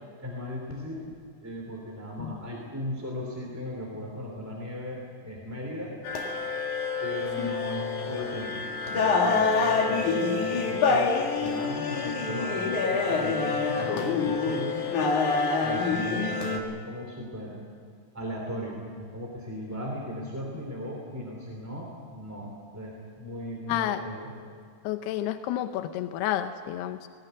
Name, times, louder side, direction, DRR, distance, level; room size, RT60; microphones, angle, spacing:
voice 1, 0.2-1.1 1.4-5.9 7.0-8.7 8.9-14.9 15.6-17.6 18.1-24.3, equal, 5° right, -1 dB, 1.9 m, -37 dB
sound 1, 6.0-16.6, left 4 dB, 55° left, 2.6 m, -26 dB
voice 2, 23.7-24.0 24.8-27.1, left 12 dB, 85° left, 9 dB, 2.3 m, -30 dB
20.0 x 18.5 x 9.4 m, 2.1 s
omnidirectional pair, 5.5 m